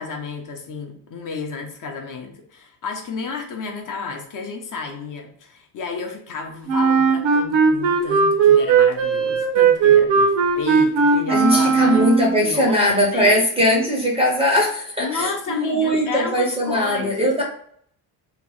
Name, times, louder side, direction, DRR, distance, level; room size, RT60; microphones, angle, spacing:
voice 1, 0.0-12.1 12.4-13.5 15.0-17.4, left 4 dB, 45° left, 2 dB, 0.5 m, -32 dB
Wind instrument woodwind instrument, 6.7-12.4, right 5 dB, 80° right, 0.7 m, -17 dB
voice 2, 11.3-17.4, equal, 15° right, -2 dB, 0.4 m, -20 dB
2.8 x 2.1 x 3.0 m, 0.63 s
cardioid pair, 160°, 44 cm